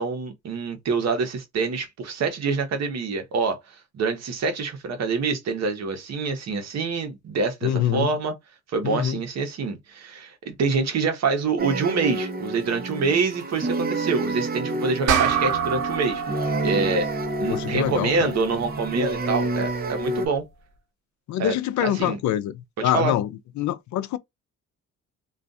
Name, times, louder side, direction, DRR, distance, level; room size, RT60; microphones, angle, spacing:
voice 1, 0.0-8.3 8.7-16.2 16.6-17.1 17.4-20.4 21.4-21.5 21.8-22.2 22.8-23.2, right 4 dB, 60° right, 0.9 m, -26 dB
voice 2, 7.6-8.1 8.8-9.2 17.5-18.3 21.3-23.3 23.6-24.2, left 12 dB, 70° left, 0.5 m, -25 dB
sound 1, 11.6-20.3, right 2 dB, 30° right, 0.8 m, -29 dB
sound 2, 15.1-19.8, right 7 dB, 90° right, 0.7 m, -29 dB
2.4 x 2.3 x 2.5 m
cardioid pair, 90°, 30 cm